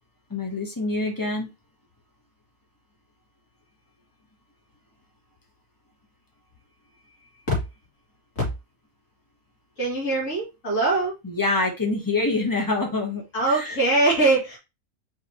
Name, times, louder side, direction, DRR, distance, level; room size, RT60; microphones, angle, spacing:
voice 1, 0.3-1.5 11.2-13.8, left 3 dB, 15° left, 2 dB, 0.9 m, -26 dB
voice 2, 9.8-11.1 13.3-14.6, right 2 dB, 60° left, -4 dB, 2.7 m, -22 dB
4.8 x 3.2 x 2.9 m, 0.25 s
omnidirectional pair, 1.6 m